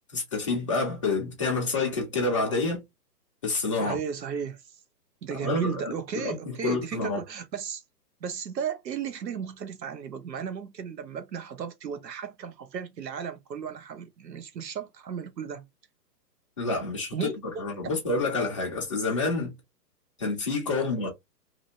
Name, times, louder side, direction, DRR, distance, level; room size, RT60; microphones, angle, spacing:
voice 1, 0.1-2.8 3.4-4.0 5.4-7.2 16.6-17.3 17.6-19.5 20.2-21.1, left 3 dB, 20° left, 0.6 m, -28 dB
voice 2, 3.8-4.8 5.2-7.8 8.2-15.6 17.1-17.9 20.8-20.9, right 7 dB, 80° right, 1.0 m, -35 dB
2.9 x 2.5 x 2.8 m
hypercardioid pair, 160°, 50 cm